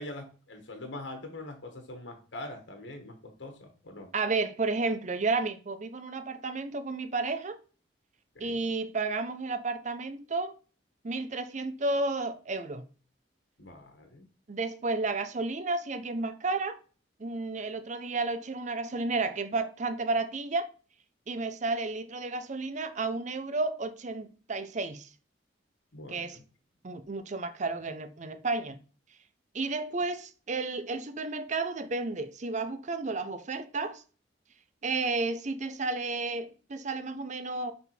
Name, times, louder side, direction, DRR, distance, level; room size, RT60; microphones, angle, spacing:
voice 1, 0.0-4.1 8.3-8.6 13.6-14.3 25.9-26.4, left 1 dB, 75° left, 1.4 m, -43 dB
voice 2, 4.1-7.6 8.4-10.6 11.0-12.8 14.5-16.8 17.2-20.7 21.3-25.1 26.1-26.4 26.8-28.8 29.5-34.0 34.8-37.7, right 3 dB, 40° right, 0.6 m, -32 dB
6.0 x 3.7 x 4.3 m
head